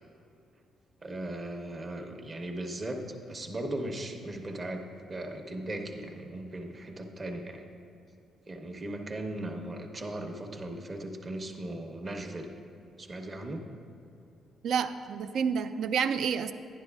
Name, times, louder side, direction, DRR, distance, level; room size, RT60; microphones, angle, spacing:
voice 1, 1.0-4.8 5.1-7.6 8.5-12.5 13.0-13.6, right 1 dB, 35° right, 4 dB, 0.9 m, -38 dB
voice 2, 14.6-16.5, right 6 dB, 70° right, 10 dB, 0.4 m, -29 dB
11.0 x 10.5 x 2.3 m, 2.8 s
cardioid pair, 90°, 0 cm